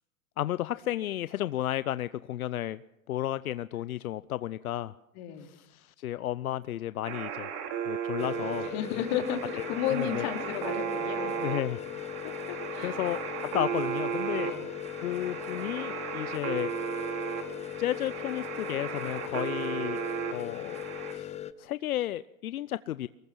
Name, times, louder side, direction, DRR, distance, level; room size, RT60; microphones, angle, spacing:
voice 1, 0.4-2.8 3.1-4.9 5.4-7.5 7.9-8.7 9.6-9.7 9.9-10.3 11.4-11.8 12.8-14.5 15.0-16.7 17.8-20.0 20.3-20.8 21.1-23.1, left 13 dB, 80° left, 15 dB, 0.7 m, -33 dB
voice 2, 5.1-5.5 8.6-11.4 12.5-13.0 14.4-14.7, left 9 dB, 50° left, 3 dB, 4.1 m, -33 dB
sound 1, 7.0-21.1, right 9 dB, 55° right, 5.1 m, -35 dB
sound 2, 8.2-21.5, left 12 dB, 15° left, 0.8 m, -39 dB
24.0 x 20.0 x 6.2 m, 0.87 s
hypercardioid pair, 120°, 42 cm